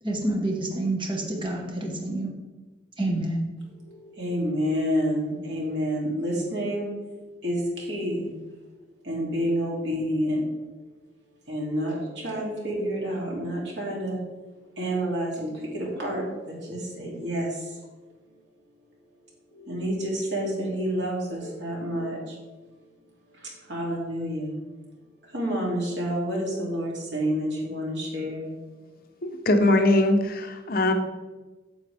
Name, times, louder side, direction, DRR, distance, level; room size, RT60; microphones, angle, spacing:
voice 1, 0.0-2.3 3.0-3.5, right 1 dB, 25° right, 0 dB, 1.3 m, -28 dB
voice 2, 3.9-6.9 7.4-8.3 9.0-10.4 11.5-14.2 14.8-17.6 19.5-22.4 23.7-24.5 25.3-28.5, equal, 80° right, -3 dB, 2.8 m, -29 dB
voice 3, 29.2-30.9, left 1 dB, 55° left, 6 dB, 0.8 m, -21 dB
9.2 x 6.9 x 3.4 m, 1.2 s
head